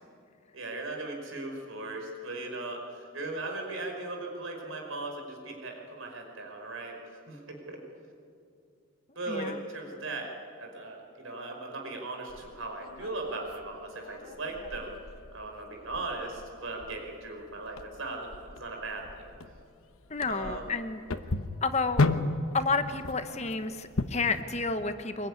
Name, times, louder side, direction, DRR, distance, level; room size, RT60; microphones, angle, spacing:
voice 1, 0.5-7.0 7.3-7.8 9.1-10.3 10.6-14.9 15.3-18.3 18.6-19.3 20.3-20.7, right 2 dB, 75° right, 2 dB, 5.1 m, -38 dB
voice 2, 9.3-9.6 20.1-21.0 21.6-22.0 22.5-25.3, left 4 dB, 30° left, 9 dB, 1.1 m, -30 dB
sound 1, 12.3-24.4, left 2 dB, 85° left, 1.2 m, -35 dB
24.0 x 22.0 x 9.8 m, 2.4 s
head